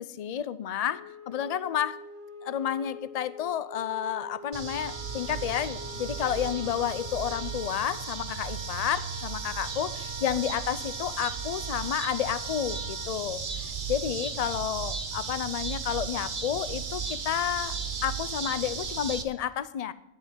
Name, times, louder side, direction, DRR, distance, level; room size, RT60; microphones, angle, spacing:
voice 1, 0.0-2.0 2.4-19.9, left 10 dB, 45° left, 16 dB, 0.5 m, -31 dB
Wind instrument woodwind instrument, 0.9-7.7, left 2 dB, 60° right, 1.7 m, -46 dB
sound 1, 4.5-19.2, right 5 dB, 45° right, 1.1 m, -35 dB
Wind instrument woodwind instrument 2, 4.7-13.1, right 2 dB, 25° right, 0.8 m, -45 dB
11.0 x 7.3 x 9.6 m, 0.85 s
omnidirectional pair, 1.3 m